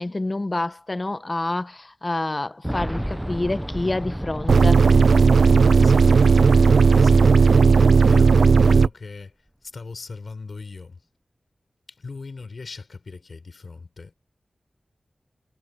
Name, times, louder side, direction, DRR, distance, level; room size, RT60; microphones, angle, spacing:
voice 1, 0.0-4.8, left 2 dB, 35° left, 1.3 m, -27 dB
Boom, 2.6-7.4 7.6-7.7 8.9-9.0, equal, 5° right, 0.7 m, -32 dB
sound 1, 4.5-8.9, right 5 dB, 80° right, 0.3 m, -15 dB
voice 2, 5.8-6.5 6.9-7.6 8.1-9.3 9.6-11.0 11.9-14.1, left 4 dB, 70° left, 5.8 m, -39 dB
cardioid pair, 40°, 0 cm